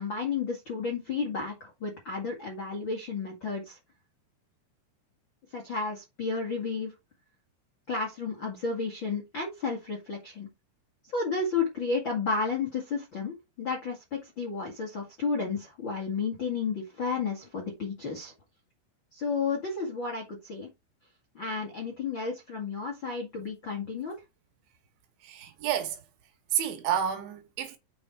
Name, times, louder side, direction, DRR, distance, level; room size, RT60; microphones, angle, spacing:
voice 1, 0.0-3.8 5.5-6.9 7.9-10.5 11.1-18.3 19.1-20.7 21.3-24.2, left 4 dB, 55° left, 1.3 m, -32 dB
voice 2, 25.2-26.0 26.5-27.8, right 9 dB, 75° right, 3.6 m, -30 dB
7.9 x 5.6 x 4.5 m
omnidirectional pair, 5.5 m